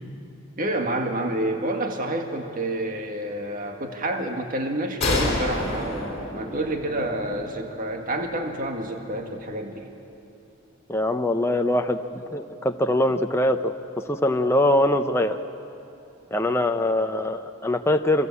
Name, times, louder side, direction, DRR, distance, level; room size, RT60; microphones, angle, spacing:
voice 1, 0.6-9.9, right 1 dB, 45° right, 3 dB, 1.9 m, -28 dB
sound 1, 5.0-8.5, left 2 dB, 30° left, 4.6 m, -29 dB
voice 2, 10.9-13.7 14.1-15.4 16.3-18.3, left 1 dB, 15° left, 5 dB, 0.7 m, -23 dB
28.0 x 24.0 x 8.5 m, 2.9 s
head